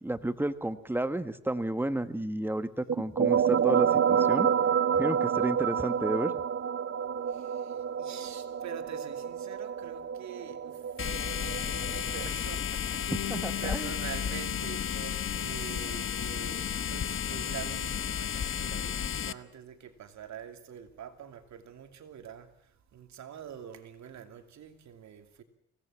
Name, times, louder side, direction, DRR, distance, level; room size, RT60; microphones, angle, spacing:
voice 1, 0.0-4.5 4.9-6.3 13.3-13.9, right 1 dB, 5° right, 1.5 m, -31 dB
sound 1, 2.9-12.3, right 8 dB, 45° right, 0.9 m, -29 dB
voice 2, 8.0-10.8 11.1-16.6 16.9-22.5 22.9-25.4, right 8 dB, 65° right, 2.7 m, -45 dB
sound 2, 11.0-19.3, left 8 dB, 45° left, 1.0 m, -33 dB
Bass guitar, 13.1-17.8 18.1-19.3, left 10 dB, 60° left, 3.3 m, -44 dB
24.0 x 17.5 x 7.5 m
cardioid pair, 90°, 30 cm